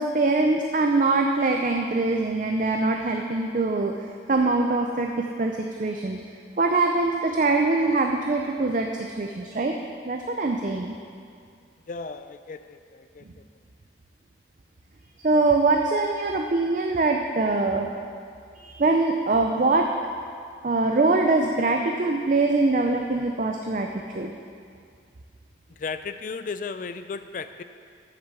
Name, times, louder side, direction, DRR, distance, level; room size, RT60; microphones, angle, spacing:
voice 1, 0.0-6.2 6.6-9.8 10.0-11.0 15.2-17.9 18.6-19.9 20.6-24.3, right 3 dB, 45° right, 3 dB, 0.5 m, -23 dB
voice 2, 11.9-13.4 25.8-27.6, left 4 dB, 45° left, 10 dB, 0.3 m, -35 dB
8.0 x 6.7 x 6.8 m, 2.2 s
head